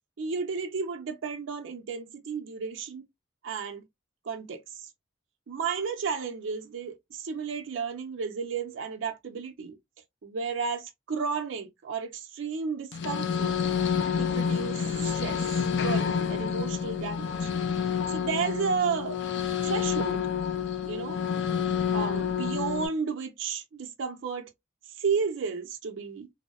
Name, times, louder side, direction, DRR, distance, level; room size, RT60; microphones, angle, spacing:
voice 1, 0.2-3.0 3.4-3.8 4.2-4.9 5.5-9.8 10.2-13.6 14.1-15.4 15.8-17.5 18.1-19.2 19.6-20.2 20.9-21.2 21.9-24.5 24.9-26.3, right 5 dB, 80° right, 0.5 m, -33 dB
sound 1, 12.9-22.9, left 7 dB, 65° left, 0.4 m, -28 dB
2.6 x 2.0 x 2.3 m
head